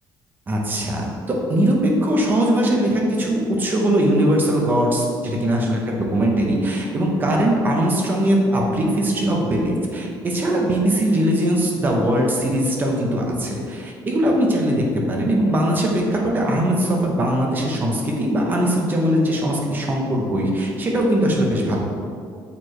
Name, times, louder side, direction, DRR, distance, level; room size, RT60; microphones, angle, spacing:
voice 1, 0.5-21.8, right 1 dB, 25° right, -1 dB, 0.8 m, -20 dB
6.8 x 4.5 x 3.2 m, 2.3 s
cardioid pair, 170°, 8 cm